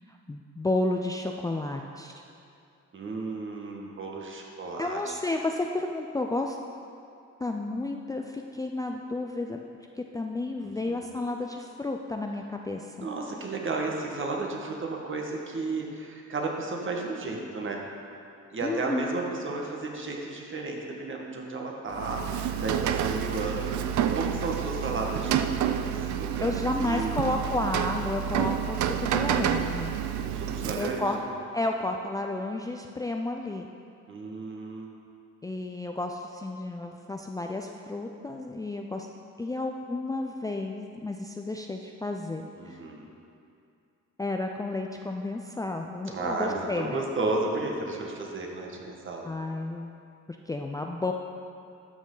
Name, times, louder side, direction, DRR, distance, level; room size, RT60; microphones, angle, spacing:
voice 1, 0.1-2.1 4.8-6.6 7.4-9.6 10.0-13.1 18.6-19.2 26.4-30.0 30.7-31.2 31.5-33.7 35.4-39.1 39.4-42.8 44.2-47.0 49.2-50.0 50.5-51.1, left 2 dB, 10° left, 2 dB, 0.4 m, -32 dB
voice 2, 2.9-5.1 10.6-11.0 13.0-17.8 18.5-26.5 26.8-27.3 30.3-31.2 34.1-35.0 42.6-43.1 46.1-49.3, right 3 dB, 40° right, 0 dB, 1.5 m, -33 dB
Rain, 21.9-31.2, right 9 dB, 70° right, 0.6 m, -29 dB
12.5 x 6.2 x 3.9 m, 2.5 s
cardioid pair, 90°, 30 cm